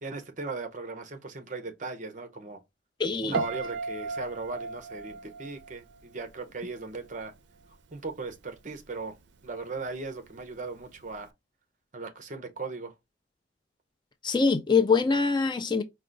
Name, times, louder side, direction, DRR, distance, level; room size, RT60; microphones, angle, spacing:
voice 1, 0.0-2.6 3.2-7.3 7.9-9.2 9.4-11.3 11.9-12.9, right 3 dB, 45° right, 0.7 m, -38 dB
voice 2, 3.0-3.4 14.2-15.8, left 4 dB, 25° left, 0.4 m, -24 dB
Piano, 3.3-6.4 6.7-7.2, right 4 dB, 75° right, 0.5 m, -35 dB
4.7 x 2.2 x 3.8 m
head